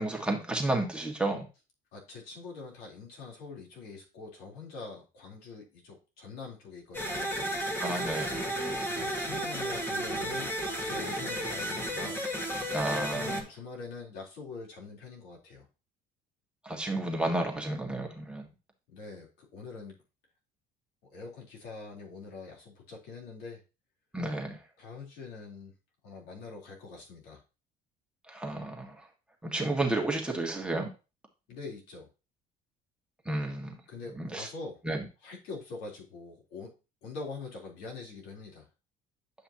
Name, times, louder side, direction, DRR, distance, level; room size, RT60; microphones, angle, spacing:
voice 1, 0.0-1.5 7.8-8.4 12.7-13.4 16.6-18.5 24.1-24.6 28.3-29.1 29.4-30.9 33.3-33.8 34.1-34.5 34.8-35.0, right 2 dB, 5° right, 1 dB, 1.7 m, -32 dB
voice 2, 1.9-7.3 8.9-10.5 10.8-12.3 13.1-15.7 18.9-20.0 21.1-23.6 24.8-25.7 26.0-27.4 31.5-32.1 33.9-34.8 35.2-36.7 37.0-38.7, left 4 dB, 75° left, -2 dB, 3.6 m, -44 dB
sound 1, 6.9-13.4, equal, 15° left, 1.8 m, -33 dB
9.0 x 5.6 x 2.9 m, 0.30 s
cardioid pair, 105°, 17 cm